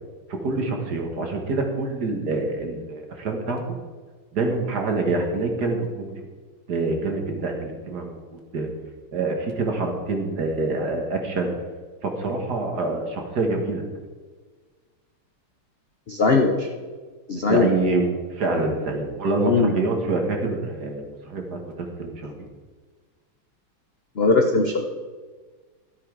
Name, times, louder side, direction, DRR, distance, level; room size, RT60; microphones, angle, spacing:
voice 1, 0.3-3.6 4.3-6.2 6.7-8.7 9.1-11.5 12.0-13.8 17.3-22.5, right 3 dB, 50° right, 3 dB, 2.0 m, -26 dB
voice 2, 16.1-16.7 17.3-17.7 19.4-19.8 24.2-24.9, left 3 dB, 50° left, 3 dB, 0.7 m, -20 dB
12.5 x 8.7 x 4.8 m, 1.4 s
omnidirectional pair, 2.3 m